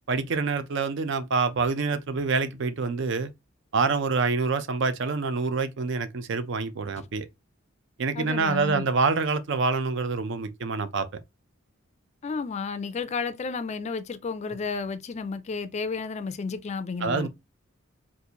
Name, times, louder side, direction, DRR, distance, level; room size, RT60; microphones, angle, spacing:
voice 1, 0.1-3.3 3.7-7.3 8.0-11.1 17.0-17.3, right 4 dB, 65° right, 0.5 m, -26 dB
voice 2, 8.2-8.9 12.2-17.3, left 4 dB, 35° left, 0.3 m, -32 dB
3.8 x 2.5 x 2.8 m
head